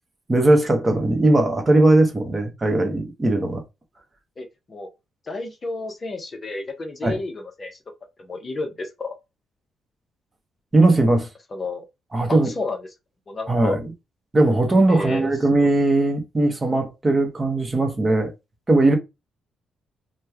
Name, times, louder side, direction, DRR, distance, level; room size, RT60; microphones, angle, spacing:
voice 1, 0.3-3.6 7.0-7.2 10.7-11.3 12.1-12.5 13.5-13.9 14.3-18.3 18.7-19.0, right 2 dB, 20° right, 0.8 m, -19 dB
voice 2, 4.4-4.9 5.3-7.8 8.2-9.1 11.5-11.8 12.3-12.9 13.3-13.8 14.9-15.7, left 3 dB, 30° left, 0.7 m, -31 dB
2.9 x 2.2 x 3.5 m
cardioid pair, 140°, 0 cm